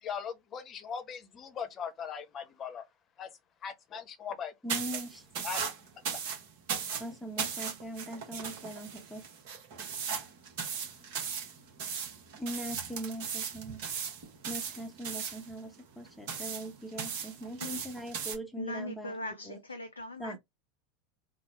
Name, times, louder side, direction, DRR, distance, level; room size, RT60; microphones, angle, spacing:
voice 1, 0.0-2.8 3.2-3.3 3.6-4.5 5.4-5.6, left 7 dB, 35° left, 0.9 m, -39 dB
voice 2, 4.6-5.5 7.0-9.3 12.4-13.8 14.4-19.1 19.5-19.6 20.2-20.4, right 1 dB, ahead, 0.8 m, -41 dB
sound 1, 4.7-18.4, right 7 dB, 55° right, 1.2 m, -38 dB
voice 3, 18.6-20.4, left 2 dB, 85° left, 0.4 m, -40 dB
3.7 x 2.2 x 4.2 m
figure-of-eight pair, 80°, 0 cm